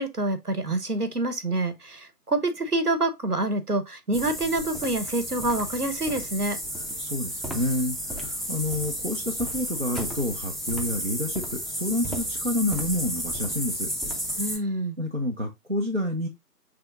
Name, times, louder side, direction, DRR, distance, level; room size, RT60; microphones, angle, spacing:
voice 1, 0.0-6.6 14.4-15.0, right 2 dB, 65° right, 1.1 m, -27 dB
sound 1, 4.1-14.6, equal, ahead, 0.6 m, -32 dB
voice 2, 7.0-13.9 15.0-16.3, left 1 dB, 45° right, 0.7 m, -29 dB
5.9 x 3.4 x 2.5 m
figure-of-eight pair, 175°, 49 cm